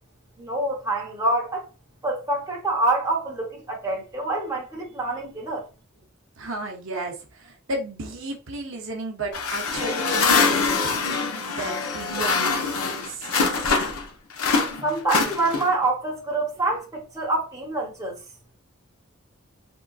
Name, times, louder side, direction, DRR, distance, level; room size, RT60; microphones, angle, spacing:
voice 1, 0.4-1.7 2.0-5.6 14.8-18.2, right 2 dB, 15° right, 0.9 m, -26 dB
voice 2, 6.4-11.0 11.5-13.3, right 2 dB, 60° right, 0.7 m, -33 dB
sound 1, 9.3-14.1 14.4-15.9, left 4 dB, 85° left, 0.6 m, -24 dB
3.6 x 2.4 x 2.3 m
head